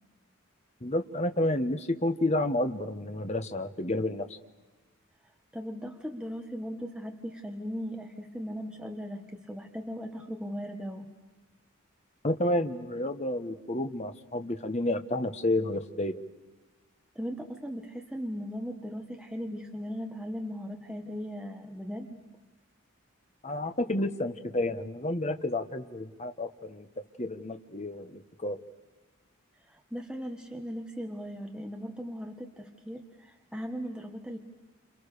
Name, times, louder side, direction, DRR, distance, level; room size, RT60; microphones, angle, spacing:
voice 1, 0.8-4.4 12.2-16.2 23.4-26.9 27.2-28.6, left 1 dB, 30° left, 8 dB, 1.3 m, -30 dB
voice 2, 5.5-11.1 17.1-22.2 29.7-34.4, equal, 5° right, 3 dB, 1.5 m, -38 dB
29.5 x 28.0 x 6.8 m, 1.2 s
head